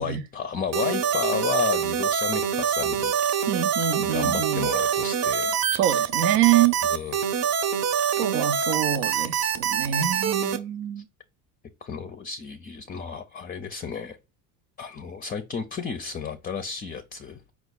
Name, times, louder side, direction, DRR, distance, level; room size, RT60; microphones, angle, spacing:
voice 1, 0.0-3.5 4.0-5.6 6.9-7.2 11.0-11.1 11.8-14.2 14.8-17.4, left 6 dB, 20° left, 0.4 m, -32 dB
sound 1, 0.7-10.6, right 7 dB, 40° right, 0.8 m, -25 dB
voice 2, 3.5-4.7 5.7-6.8 8.2-11.1, right 11 dB, 75° right, 0.6 m, -25 dB
4.5 x 2.3 x 3.9 m
supercardioid pair, 100°, 41 cm